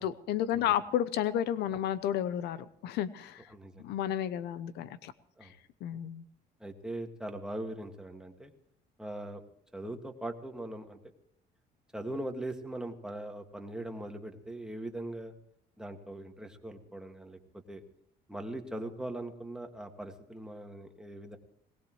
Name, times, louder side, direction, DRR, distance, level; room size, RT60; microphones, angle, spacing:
voice 1, 0.0-3.4 3.8-5.1 5.4-5.5 5.8-6.2, left 11 dB, 80° left, 15 dB, 0.7 m, -32 dB
voice 2, 3.5-3.9 5.4-5.5 6.6-8.5 9.0-9.4 9.7-11.0 11.9-15.3 15.8-17.4 17.7-17.8 18.3-21.4, right 1 dB, 5° right, 3 dB, 2.0 m, -40 dB
20.5 x 19.0 x 3.2 m, 0.68 s
cardioid pair, 110°, 17 cm